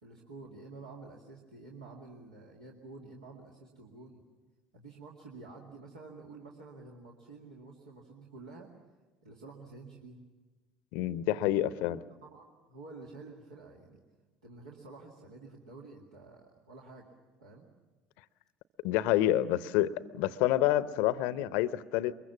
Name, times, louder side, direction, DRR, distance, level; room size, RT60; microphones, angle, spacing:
voice 1, 0.0-4.2 4.7-8.7 9.2-10.3 11.6-14.0 14.4-17.1 17.4-17.7, right 3 dB, 75° right, -2 dB, 2.2 m, -50 dB
voice 2, 10.9-12.0 18.8-22.1, left 14 dB, 60° left, 17 dB, 0.7 m, -28 dB
23.5 x 22.0 x 7.3 m, 1.2 s
figure-of-eight pair, 65°, 3 cm